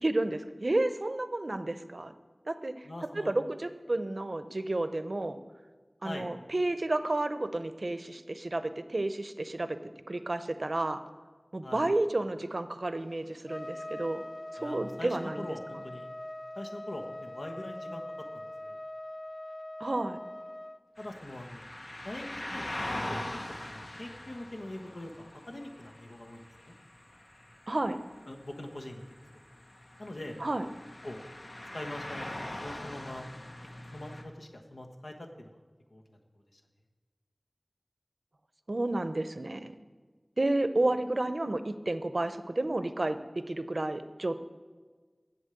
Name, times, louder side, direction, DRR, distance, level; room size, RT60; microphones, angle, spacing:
voice 1, 0.0-2.1 2.5-2.9 3.1-5.4 6.0-11.0 11.5-14.2 14.5-15.5 19.8-20.2 27.7-28.0 30.4-30.7 38.7-39.8 40.4-44.4, right 2 dB, 65° right, 11 dB, 0.6 m, -31 dB
voice 2, 2.8-3.4 6.0-6.3 11.6-11.8 14.6-16.1 16.6-18.8 21.0-21.6 22.0-26.7 28.3-29.2 30.0-30.4 31.0-31.2 31.7-33.2 33.9-35.5 35.9-36.2 36.5-36.6, left 1 dB, 80° left, 2 dB, 1.2 m, -43 dB
Trumpet, 13.5-20.8, left 1 dB, 20° left, 0.6 m, -42 dB
sound 1, 21.0-34.2, left 1 dB, 65° left, 1.2 m, -42 dB
8.1 x 7.2 x 7.7 m, 1.4 s
wide cardioid pair, 50°, 0 cm